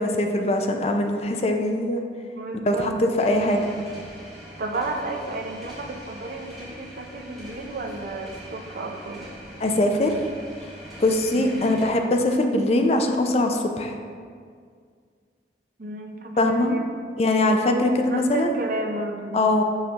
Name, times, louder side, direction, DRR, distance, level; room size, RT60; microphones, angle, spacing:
voice 1, 0.0-2.0 2.7-3.8 9.6-10.1 11.0-13.9 16.4-16.8 17.2-18.5 19.3-19.6, left 1 dB, 35° left, 4 dB, 0.4 m, -22 dB
voice 2, 2.3-2.9 4.6-9.2 11.3-11.7 15.8-16.9 18.1-19.4, right 2 dB, 50° right, 3 dB, 0.5 m, -32 dB
sound 1, 3.2-11.9, right 1 dB, ahead, 1.4 m, -42 dB
6.3 x 5.5 x 2.9 m, 2.1 s
head